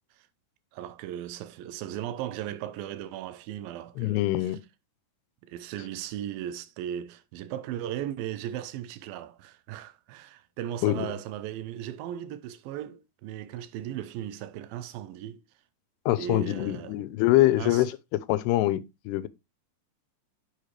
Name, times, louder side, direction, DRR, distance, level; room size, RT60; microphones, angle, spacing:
voice 1, 0.7-4.5 5.4-15.4 16.2-17.0 17.6-17.9, right 11 dB, 80° right, 2.2 m, -37 dB
voice 2, 4.0-4.6 10.8-11.1 16.1-17.9 18.3-19.3, left 16 dB, 80° left, 2.5 m, -24 dB
7.9 x 6.2 x 3.3 m
omnidirectional pair, 4.9 m